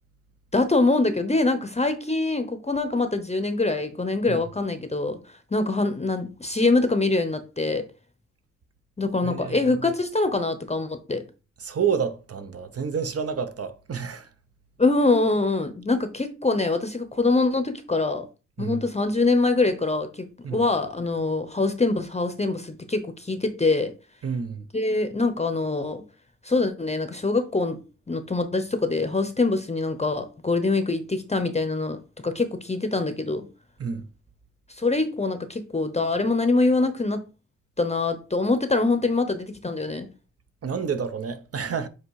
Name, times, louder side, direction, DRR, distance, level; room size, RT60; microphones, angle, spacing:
voice 1, 0.5-5.2 5.5-7.8 9.0-11.2 14.8-18.3 18.6-23.9 24.7-26.0 26.4-27.8 28.1-33.5 34.7-37.2 37.8-40.1, left 3 dB, 20° left, 0.7 m, -24 dB
voice 2, 9.2-9.6 11.6-14.3 18.6-18.8 20.4-20.6 24.2-24.6 33.8-34.1 40.6-41.9, right 6 dB, 50° right, 0.8 m, -29 dB
7.9 x 2.8 x 4.7 m
wide cardioid pair, 105°, 30 cm